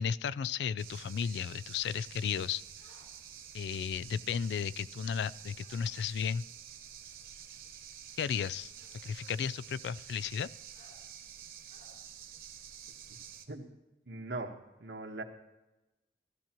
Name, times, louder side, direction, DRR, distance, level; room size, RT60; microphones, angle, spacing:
voice 1, 0.0-2.6 3.5-6.4 8.2-8.7 9.0-10.5, left 7 dB, 80° left, 19 dB, 0.3 m, -34 dB
sound 1, 0.8-13.5, right 9 dB, 55° right, 1.1 m, -49 dB
sound 2, 2.8-3.1 5.5-5.8 7.1-7.2 8.7-9.0 10.7-11.0 11.7-11.9, left 2 dB, 55° left, 3.4 m, -61 dB
voice 2, 13.1-13.7 14.0-15.2, right 2 dB, 90° right, 3 dB, 1.3 m, -41 dB
16.0 x 12.5 x 3.0 m, 1.0 s
head